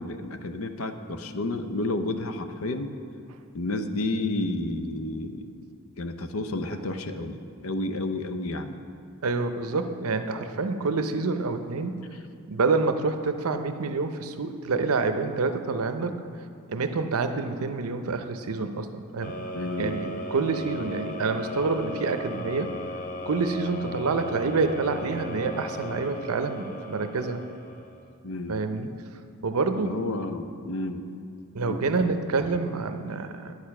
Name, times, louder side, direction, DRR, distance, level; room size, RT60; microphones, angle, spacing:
voice 1, 0.0-2.9 3.5-5.7 6.0-8.8 19.5-20.0 28.2-28.6 29.8-31.1 31.6-32.1, left 2 dB, 70° left, 8 dB, 0.6 m, -31 dB
voice 2, 9.2-12.0 12.5-16.2 16.7-19.4 19.8-22.8 23.3-27.4 28.5-29.1 29.4-30.0 31.5-33.5, right 4 dB, 90° right, 8 dB, 0.6 m, -27 dB
sound 1, 19.2-28.1, left 1 dB, 40° left, 0.7 m, -37 dB
9.5 x 6.7 x 5.9 m, 2.3 s
head